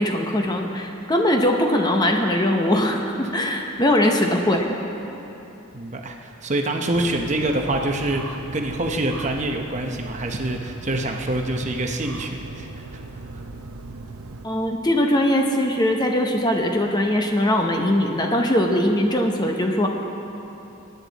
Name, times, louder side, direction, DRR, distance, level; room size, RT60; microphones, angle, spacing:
voice 1, 0.0-4.8 14.4-19.9, left 1 dB, 20° left, 2 dB, 0.8 m, -21 dB
voice 2, 5.7-13.0, right 1 dB, 30° right, 3 dB, 0.8 m, -26 dB
sound 1, 6.9-14.5, right 3 dB, 80° right, 0.7 m, -38 dB
22.0 x 9.5 x 4.0 m, 2.9 s
head